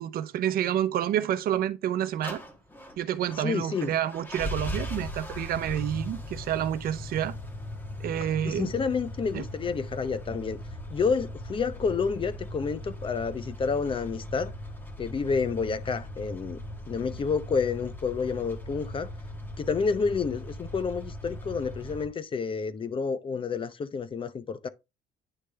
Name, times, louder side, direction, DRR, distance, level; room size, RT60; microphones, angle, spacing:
voice 1, 0.0-2.4 3.0-7.3 8.0-8.7 9.3-9.4, right 11 dB, 60° right, 0.7 m, -29 dB
sound 1, 2.2-22.1, left 1 dB, 10° left, 1.4 m, -39 dB
voice 2, 3.4-3.9 8.2-10.6 10.9-14.5 15.0-19.1 19.6-24.7, left 5 dB, 30° left, 0.7 m, -29 dB
9.9 x 3.3 x 3.3 m
cardioid pair, 110°, 17 cm